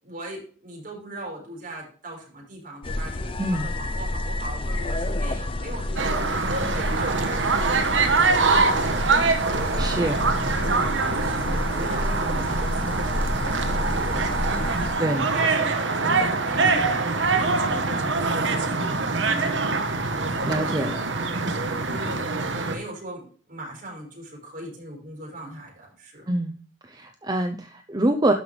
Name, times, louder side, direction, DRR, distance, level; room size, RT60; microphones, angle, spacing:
voice 1, 0.0-10.1 10.5-26.3, right 1 dB, 45° right, -1 dB, 4.8 m, -40 dB
sound 1, 2.8-14.9, left 1 dB, 30° left, 0.5 m, -30 dB
sound 2, 6.0-22.7, right 3 dB, 80° right, 1.1 m, -24 dB
voice 2, 9.8-10.2 15.0-15.3 20.4-21.0 26.3-26.5 26.8-28.3, right 1 dB, 20° right, 6 dB, 0.6 m, -25 dB
12.0 x 5.6 x 3.3 m, 0.42 s
head